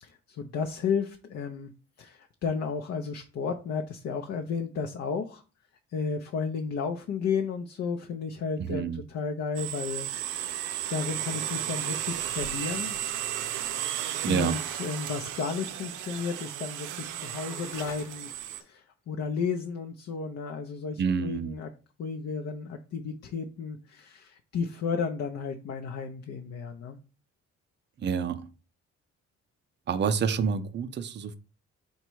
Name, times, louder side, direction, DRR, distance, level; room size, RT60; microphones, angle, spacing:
voice 1, 0.0-1.7 2.0-5.4 5.9-10.5 10.9-13.0 14.3-18.3 18.6-21.7 22.0-27.0, left 5 dB, 55° left, 5 dB, 0.5 m, -33 dB
voice 2, 8.7-9.0 14.2-14.5 21.0-21.6 28.0-28.4 29.9-31.4, right 6 dB, 35° right, 10 dB, 0.5 m, -28 dB
sound 1, 9.5-18.6, right 11 dB, 85° right, 0.5 m, -34 dB
sound 2, 16.4-18.7, left 6 dB, 85° left, 0.8 m, -51 dB
4.0 x 2.2 x 4.5 m, 0.35 s
cardioid pair, 90°, 30 cm